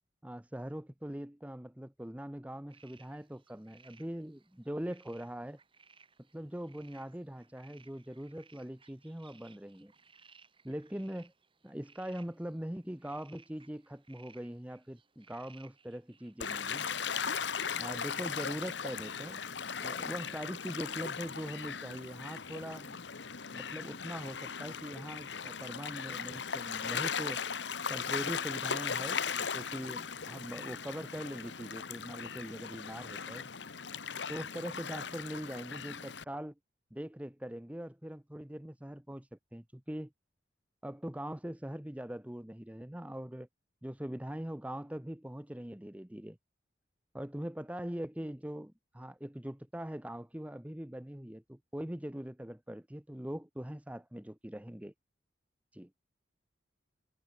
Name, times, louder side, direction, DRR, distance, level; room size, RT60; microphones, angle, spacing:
voice 1, 0.2-5.6 6.3-9.9 10.6-11.3 11.6-16.9 17.8-19.4 19.8-23.0 23.5-27.4 27.9-33.5 34.3-36.5 36.9-40.1 40.8-43.5 43.8-46.4 47.1-54.9 55.7-55.9, equal, 10° right, 0.8 m, -42 dB
sound 1, 2.7-22.4, right 5 dB, 30° right, 6.1 m, -63 dB
Gull seagull / Waves surf, 16.4-36.2, left 6 dB, 70° left, 1.3 m, -38 dB
head